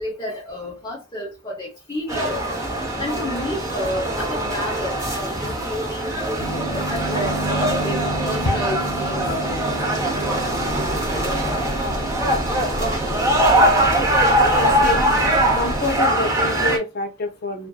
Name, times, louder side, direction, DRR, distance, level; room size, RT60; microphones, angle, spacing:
voice 1, 0.0-2.4 3.0-9.7, left 1 dB, 25° left, 0.8 m, -31 dB
sound 1, 2.1-16.8, right 1 dB, 15° right, 0.6 m, -22 dB
sound 2, 6.4-15.7, right 1 dB, 80° left, 0.9 m, -32 dB
Breathing / Train, 10.5-16.1, equal, 45° right, 1.5 m, -33 dB
voice 2, 14.6-15.0 15.5-17.7, left 2 dB, 50° left, 0.6 m, -27 dB
2.6 x 2.5 x 2.3 m
head